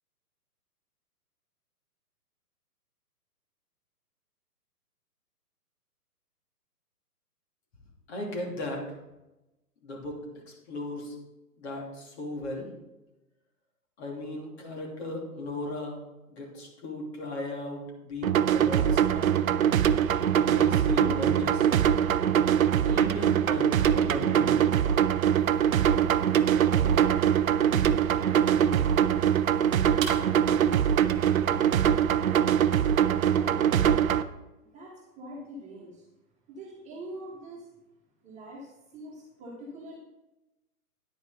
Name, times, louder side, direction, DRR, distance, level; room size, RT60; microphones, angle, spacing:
voice 1, 8.1-8.8 9.8-10.3 10.7-11.1 11.6-12.7 14.0-15.9 16.3-19.4 20.3-21.7 22.8-24.7, left 2 dB, 40° left, 0 dB, 2.9 m, -36 dB
sound 1, 18.2-34.2, right 9 dB, 60° right, 0.6 m, -23 dB
sound 2, 25.3-32.4, right 5 dB, 30° right, 1.6 m, -44 dB
voice 2, 33.0-34.1 34.6-36.1 36.5-37.7 38.2-40.0, right 1 dB, 15° right, -4 dB, 1.9 m, -44 dB
10.0 x 9.4 x 3.8 m, 0.99 s
figure-of-eight pair, 130°, 47 cm